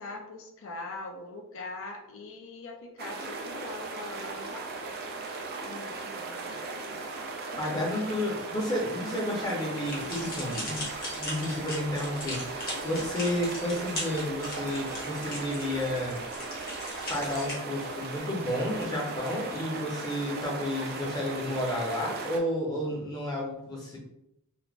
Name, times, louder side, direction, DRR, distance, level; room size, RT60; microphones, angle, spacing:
voice 1, 0.0-4.9 5.6-7.1 7.5-8.1 12.7-13.0, left 2 dB, 60° left, 2 dB, 0.4 m, -42 dB
sound 1, 3.0-22.4, right 3 dB, 45° right, 0.4 m, -37 dB
voice 2, 7.6-10.8 11.2-16.2 17.1-24.0, left 1 dB, 20° left, -3 dB, 0.6 m, -31 dB
sound 2, 9.8-17.5, left 1 dB, 40° left, 0.9 m, -39 dB
3.2 x 2.0 x 2.4 m, 0.83 s
head